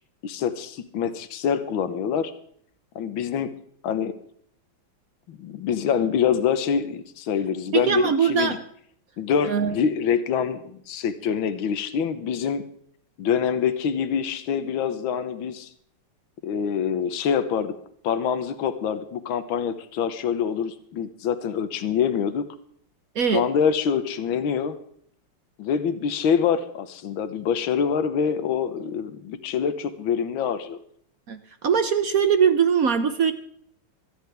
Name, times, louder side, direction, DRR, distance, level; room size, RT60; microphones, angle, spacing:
voice 1, 0.2-2.3 3.0-3.6 3.8-4.1 5.3-8.6 9.2-12.6 13.2-15.7 16.4-17.8 18.0-22.4 23.3-24.8 25.6-30.8, left 7 dB, 70° left, 11 dB, 1.8 m, -25 dB
voice 2, 7.7-8.6 9.4-9.7 23.1-23.4 31.3-33.3, right 7 dB, 55° right, 9 dB, 1.0 m, -21 dB
26.0 x 10.0 x 3.5 m, 0.62 s
omnidirectional pair, 2.4 m